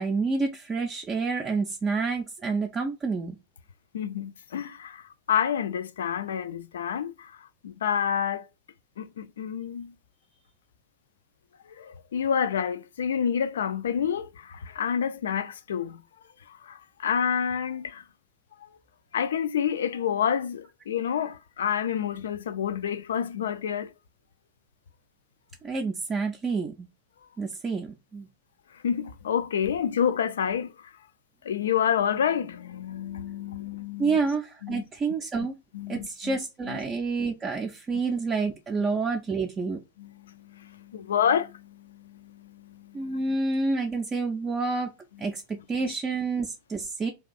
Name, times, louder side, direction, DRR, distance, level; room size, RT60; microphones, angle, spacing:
voice 1, 0.0-3.4 25.6-26.9 27.4-28.3 34.0-35.6 35.9-39.8 42.9-44.9 45.2-47.1, right 4 dB, 20° right, 0.4 m, -28 dB
voice 2, 3.9-8.4 9.0-9.9 11.8-16.0 16.5-18.0 19.1-23.9 28.8-30.7 31.4-34.2 34.6-34.8 35.7-36.4 36.7-36.8 40.0-43.2 45.6-45.7, left 8 dB, 65° left, 0.3 m, -29 dB
2.5 x 2.3 x 3.7 m
figure-of-eight pair, 90°, 0 cm